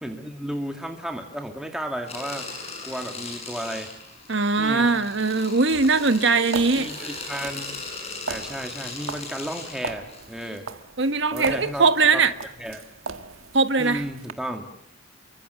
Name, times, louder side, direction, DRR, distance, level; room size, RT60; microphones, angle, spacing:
voice 1, 0.0-2.5 2.8-3.9 4.6-4.9 6.7-7.8 8.3-10.7 11.3-11.9 12.1-12.2 12.6-12.8 13.8-14.7, equal, 5° right, 2.3 m, -33 dB
sound 1, 2.1-10.6, left 3 dB, 30° left, 7.6 m, -38 dB
voice 2, 4.3-6.9 11.0-12.3 13.5-14.0, right 4 dB, 60° right, 1.5 m, -20 dB
sound 2, 5.6-14.3, right 4 dB, 85° right, 1.5 m, -38 dB
30.0 x 24.5 x 7.0 m
head